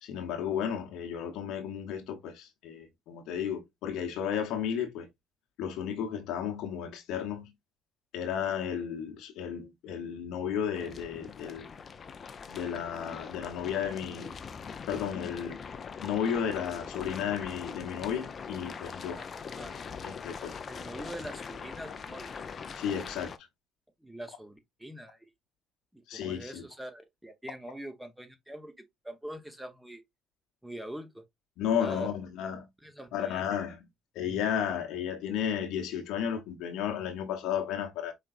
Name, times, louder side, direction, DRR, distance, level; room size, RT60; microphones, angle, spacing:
voice 1, 0.0-5.1 5.6-7.5 8.1-11.7 12.5-14.3 14.9-15.6 16.0-19.2 20.0-20.6 22.7-23.3 26.1-26.6 31.6-32.7 33.1-33.9 34.1-38.1, left 8 dB, 70° left, 1.0 m, -33 dB
sound 1, 10.7-23.4, left 6 dB, 45° left, 0.6 m, -42 dB
voice 2, 19.1-19.8 20.7-22.3 24.0-25.2 25.9-28.7 29.0-30.0 30.6-31.2 31.8-32.1 32.8-33.4, right 1 dB, 5° right, 1.1 m, -43 dB
5.0 x 3.2 x 2.5 m
hypercardioid pair, 60°, 0 cm